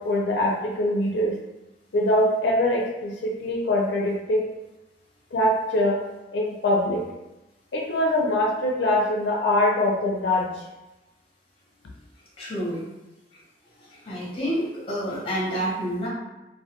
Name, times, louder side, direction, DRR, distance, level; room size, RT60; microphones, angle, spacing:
voice 1, 0.0-1.4 1.9-4.5 5.3-6.0 6.3-7.1 7.7-10.7, left 1 dB, 85° left, -2 dB, 0.4 m, -23 dB
voice 2, 12.4-12.8 13.8-16.1, equal, 30° left, -5 dB, 0.7 m, -29 dB
2.2 x 2.1 x 2.8 m, 1.0 s
head